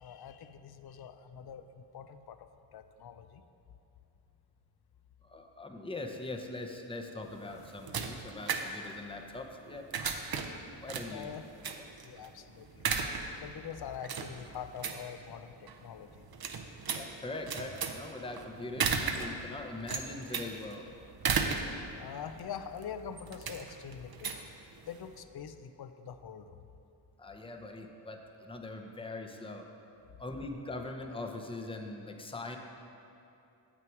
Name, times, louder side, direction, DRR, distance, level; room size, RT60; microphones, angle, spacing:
voice 1, 0.0-3.4 11.1-11.4 12.0-12.9 13.4-16.3 19.4-19.8 22.0-24.3 24.9-26.6, left 7 dB, 55° left, 10 dB, 0.5 m, -44 dB
voice 2, 5.2-9.9 10.8-11.3 11.8-11.9 16.9-20.8 27.2-29.7 30.2-32.6, left 2 dB, 10° left, 3 dB, 0.7 m, -42 dB
sound 1, 7.2-25.2, right 5 dB, 50° right, 0.7 m, -37 dB
7.6 x 6.2 x 4.7 m, 2.8 s
cardioid pair, 55°, 46 cm